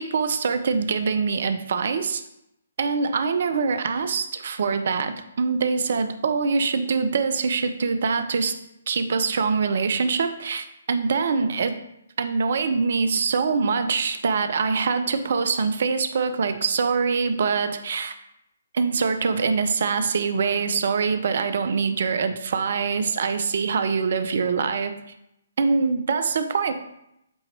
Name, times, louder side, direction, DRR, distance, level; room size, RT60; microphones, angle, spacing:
voice 1, 0.0-2.2 2.8-8.6 8.9-11.8 12.2-18.1 18.7-25.0 25.6-26.7, right 5 dB, 60° right, 10 dB, 0.5 m, -24 dB
7.9 x 2.9 x 4.4 m, 0.82 s
figure-of-eight pair, 135°, 0 cm